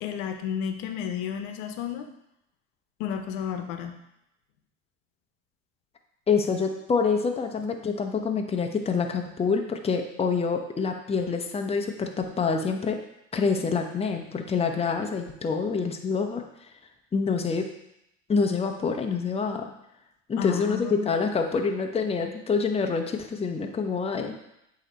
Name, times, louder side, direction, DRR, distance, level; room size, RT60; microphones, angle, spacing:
voice 1, 0.0-2.1 3.0-3.9 20.4-21.1, left 8 dB, 65° left, 6 dB, 0.9 m, -32 dB
voice 2, 6.3-13.0 13.3-16.4 17.1-17.7 18.3-19.7 20.3-24.3, left 5 dB, 15° left, 4 dB, 0.7 m, -26 dB
8.0 x 3.0 x 4.3 m, 0.83 s
hypercardioid pair, 90°, 38 cm